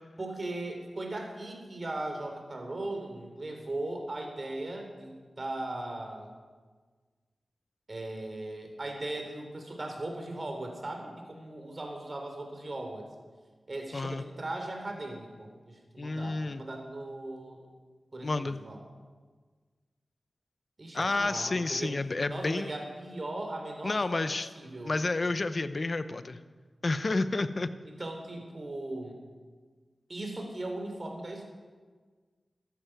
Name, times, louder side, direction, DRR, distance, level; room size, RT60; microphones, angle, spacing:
voice 1, 0.2-6.3 7.9-13.1 13.7-17.6 18.1-18.8 20.8-22.0 22.3-24.3 24.6-24.9 27.8-29.2 30.1-31.5, right 2 dB, 50° right, 3 dB, 3.5 m, -38 dB
voice 2, 13.9-14.2 16.0-16.6 18.2-18.6 20.9-22.7 23.8-24.5 24.8-26.4 26.8-27.7, left 3 dB, 55° left, 13 dB, 0.8 m, -30 dB
14.0 x 11.5 x 6.0 m, 1.5 s
cardioid pair, 40°, 0 cm